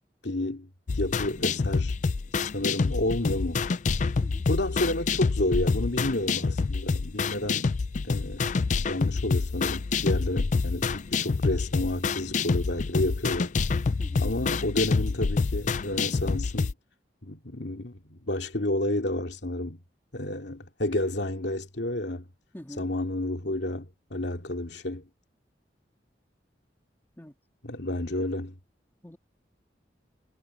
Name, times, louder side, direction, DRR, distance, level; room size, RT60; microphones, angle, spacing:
voice 1, 0.2-0.7 0.9-1.9 2.3-3.7 4.5-7.7 8.0-8.6 8.9-13.5 14.2-16.7 17.2-19.8 20.1-22.3 22.8-25.0 27.6-28.5, left 1 dB, 75° left, 2.6 m, -30 dB
sound 1, 0.9-16.7, left 4 dB, 45° left, 0.4 m, -27 dB
voice 2, 22.5-22.9 27.2-27.3 29.0-29.2, equal, 15° left, 2.3 m, -44 dB
head